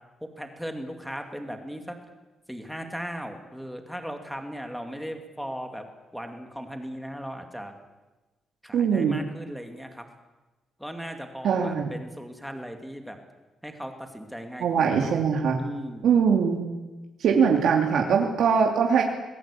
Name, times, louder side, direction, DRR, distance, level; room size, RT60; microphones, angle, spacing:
voice 1, 0.2-1.9 2.5-5.9 6.1-7.7 8.6-10.1 10.8-13.2 13.6-15.2 15.6-16.1 17.9-18.1, equal, ahead, 5 dB, 2.3 m, -37 dB
voice 2, 8.7-9.2 11.4-11.9 14.6-15.6 16.0-16.6 17.2-19.0, right 6 dB, 65° right, 1 dB, 2.8 m, -22 dB
27.5 x 20.0 x 8.5 m, 1.1 s
cardioid pair, 170°, 0 cm